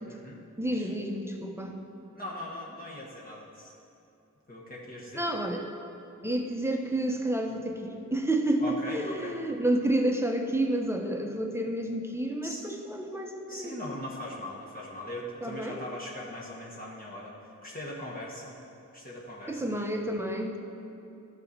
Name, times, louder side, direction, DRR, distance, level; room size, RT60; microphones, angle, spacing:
voice 1, 0.1-0.4 0.7-0.9 2.1-3.7 4.5-5.2 8.6-9.4 12.4-12.6 13.5-18.6 18.9-20.0, left 1 dB, 25° left, -6 dB, 1.3 m, -40 dB
voice 2, 0.6-1.8 5.1-5.7 6.2-13.8 15.4-15.9 19.5-20.6, right 1 dB, 10° right, 3 dB, 0.9 m, -30 dB
11.5 x 4.2 x 6.6 m, 2.7 s
wide cardioid pair, 75°, 32 cm